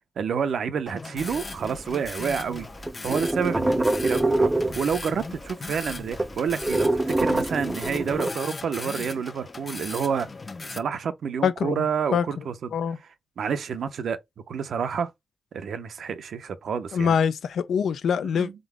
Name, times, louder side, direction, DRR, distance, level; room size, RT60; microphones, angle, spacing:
voice 1, 0.2-2.7 3.0-10.3 10.7-12.5 13.4-14.2 14.5-15.1 15.5-17.2 18.3-18.5, right 7 dB, 85° right, 0.6 m, -29 dB
sound 1, 0.9-10.8, left 3 dB, 45° left, 0.8 m, -38 dB
sound 2, 1.2-2.3 2.6-5.2 5.5-5.6 5.8-8.3, right 2 dB, 25° right, 0.5 m, -25 dB
voice 2, 11.4-11.8 12.1-12.2 12.7-13.0 16.9-18.5, left 7 dB, 85° left, 0.4 m, -24 dB
3.8 x 3.6 x 3.4 m
supercardioid pair, 45°, 0 cm